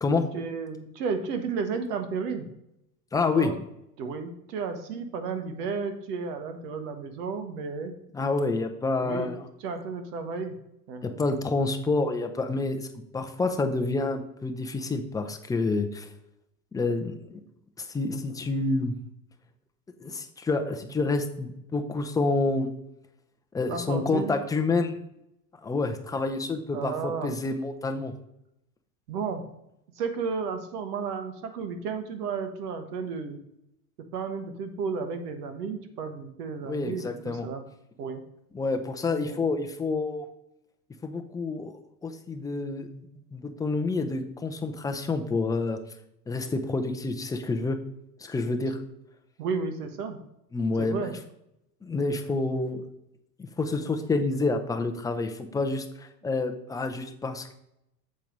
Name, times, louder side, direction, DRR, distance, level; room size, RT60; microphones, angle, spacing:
voice 1, 0.3-2.5 3.3-3.6 4.0-7.9 9.0-10.6 10.9-11.2 23.7-24.3 26.7-27.4 29.1-29.4 29.9-33.4 34.1-37.6 38.0-38.2 39.1-39.5 49.4-50.2 50.8-51.1, right 5 dB, 80° right, 8 dB, 1.5 m, -33 dB
voice 2, 3.1-3.5 8.1-9.4 11.0-12.9 13.1-16.1 16.7-17.4 17.8-19.0 20.0-22.7 23.5-24.9 25.6-28.1 36.6-37.5 38.5-40.3 41.0-43.0 43.3-45.8 46.3-47.8 48.2-48.8 50.5-51.1 51.8-52.8 53.4-57.5, left 3 dB, 10° left, 6 dB, 0.4 m, -28 dB
7.4 x 4.5 x 5.3 m, 0.81 s
supercardioid pair, 130°, 46 cm